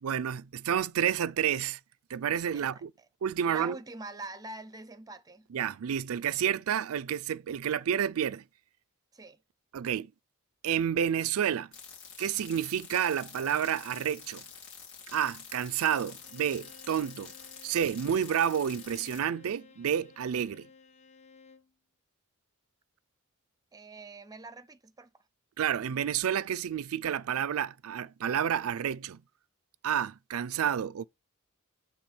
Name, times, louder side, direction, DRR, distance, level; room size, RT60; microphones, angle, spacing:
voice 1, 0.0-1.8 2.1-2.9 3.2-3.8 5.5-8.4 9.7-10.1 10.6-11.7 12.2-14.4 15.1-17.3 17.6-20.7 25.6-29.2 29.8-31.1, right 8 dB, 75° right, 0.4 m, -30 dB
voice 2, 2.5-3.1 3.4-5.5 9.1-9.4 23.7-25.1, right 3 dB, 15° right, 0.6 m, -44 dB
sound 1, 11.7-19.2, left 6 dB, 55° left, 2.6 m, -48 dB
Bowed string instrument, 16.1-21.7, left 5 dB, 30° left, 1.0 m, -56 dB
7.7 x 3.5 x 4.3 m
head